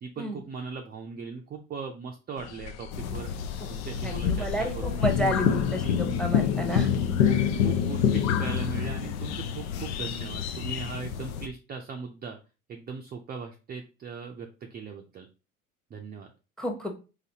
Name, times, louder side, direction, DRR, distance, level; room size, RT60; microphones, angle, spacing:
voice 1, 0.0-3.3 3.7-6.0 7.2-12.4 12.7-15.3 15.9-16.3, right 5 dB, 25° right, 2 dB, 0.5 m, -39 dB
sound 1, 2.4-11.0, left 8 dB, 40° left, 0.5 m, -37 dB
sound 2, 2.9-11.5, left 8 dB, 85° left, 0.6 m, -28 dB
voice 2, 4.0-5.8 6.2-6.9 16.6-16.9, equal, ahead, 5 dB, 0.8 m, -30 dB
4.0 x 2.7 x 2.7 m, 0.31 s
hypercardioid pair, 85°, 42 cm